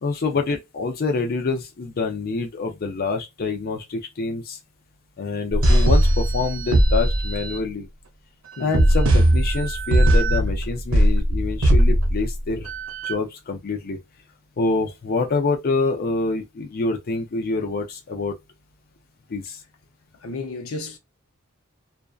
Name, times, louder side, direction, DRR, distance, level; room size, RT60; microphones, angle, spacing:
voice 1, 0.0-4.6 5.2-7.9 8.6-12.7 13.0-14.0 14.6-18.3 19.3-19.6, left 3 dB, 45° left, 0.5 m, -26 dB
sound 1, 5.5-7.6 8.7-13.1, right 1 dB, 65° right, 0.7 m, -18 dB
voice 2, 20.2-21.0, left 3 dB, 90° left, 0.6 m, -33 dB
2.5 x 2.2 x 2.3 m
head